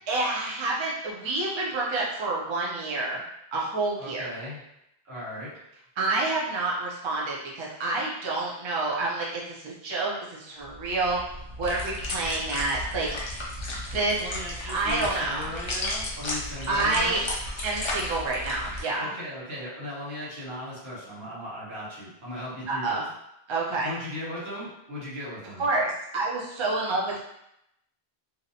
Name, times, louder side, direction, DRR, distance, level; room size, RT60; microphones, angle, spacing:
voice 1, 0.1-3.2 3.5-4.3 6.0-13.6 13.9-14.2 14.7-15.5 16.7-17.2 17.6-19.1 22.7-23.0 23.5-23.9 25.6-27.2, right 2 dB, 40° right, -4 dB, 0.4 m, -28 dB
voice 2, 4.0-4.6 5.0-5.5 14.2-17.3 19.0-23.0 23.8-25.6, left 1 dB, 75° right, -9 dB, 1.4 m, -37 dB
sound 1, 10.6-18.8, left 1 dB, 40° left, 0.4 m, -34 dB
2.7 x 2.1 x 2.7 m, 0.81 s
omnidirectional pair, 1.1 m